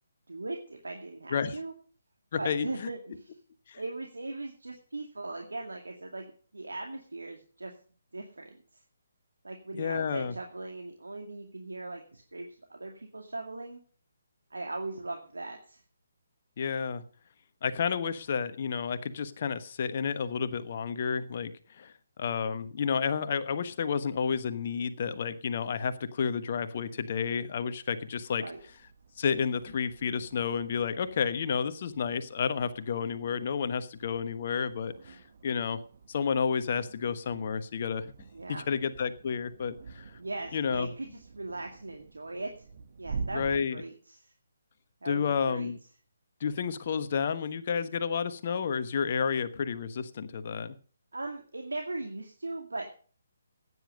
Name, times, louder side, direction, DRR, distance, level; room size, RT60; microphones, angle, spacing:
voice 1, 0.3-1.7 2.4-3.3 3.7-7.7 8.1-8.8 9.4-13.8 14.5-15.8 28.4-28.6 38.3-38.7 40.2-42.7 43.0-44.3 45.0-45.7 51.1-53.0, right 2 dB, 70° right, 2 dB, 2.2 m, -39 dB
voice 2, 2.3-2.9 3.7-3.8 9.7-10.3 16.6-17.0 17.6-21.5 21.8-21.9 22.2-28.4 29.2-35.8 36.1-38.1 38.7-40.2 40.5-40.9 43.3-43.8 45.0-45.8 46.4-50.7, left 6 dB, 40° left, 11 dB, 1.2 m, -31 dB
sound 1, 27.2-43.6, right 5 dB, 40° right, 1.3 m, -47 dB
15.5 x 9.7 x 5.3 m, 0.42 s
figure-of-eight pair, 140°, 0 cm